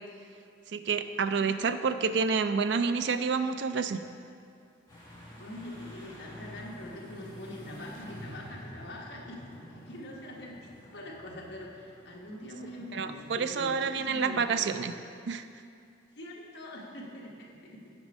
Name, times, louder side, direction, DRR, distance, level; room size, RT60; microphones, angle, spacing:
voice 1, 0.7-4.0 12.9-14.9 15.3-15.4, right 5 dB, 60° right, 10 dB, 0.4 m, -28 dB
sound 1, 4.9-14.7, equal, 20° left, 1.9 m, -49 dB
voice 2, 5.4-9.4 9.7-14.5 16.1-17.8, left 1 dB, 60° left, -2 dB, 1.2 m, -43 dB
8.1 x 5.2 x 5.3 m, 2.4 s
head